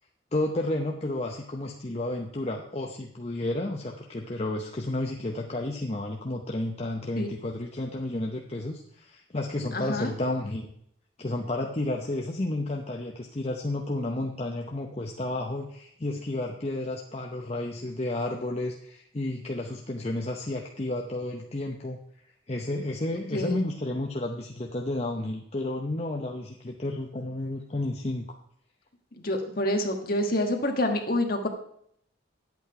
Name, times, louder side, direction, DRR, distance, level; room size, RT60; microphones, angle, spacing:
voice 1, 0.3-10.7 11.2-22.0 22.5-28.3, left 1 dB, 30° left, 1 dB, 0.7 m, -31 dB
voice 2, 9.7-10.1 23.3-23.6 29.2-31.5, left 1 dB, 50° left, 4 dB, 1.4 m, -27 dB
10.5 x 8.3 x 4.7 m, 0.69 s
head